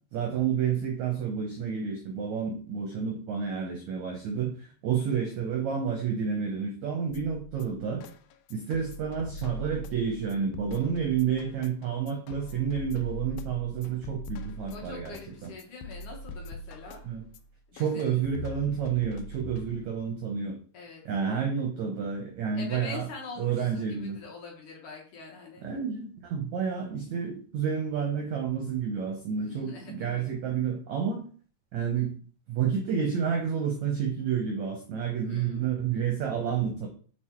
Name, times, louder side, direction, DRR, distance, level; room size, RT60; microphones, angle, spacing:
voice 1, 0.1-8.0 8.5-15.5 17.0-17.2 17.7-20.6 21.0-23.0 23.4-24.2 25.6-31.3 31.7-32.1 32.5-36.9, right 7 dB, 75° right, 2 dB, 1.7 m, -30 dB
sound 1, 7.1-20.1, left 1 dB, 90° left, 2.0 m, -42 dB
voice 2, 14.7-17.0 17.7-18.2 20.7-21.0 22.5-25.6 29.4-30.3 35.2-35.7, left 4 dB, 60° left, -1 dB, 2.3 m, -44 dB
6.8 x 4.4 x 4.5 m, 0.43 s
omnidirectional pair, 4.7 m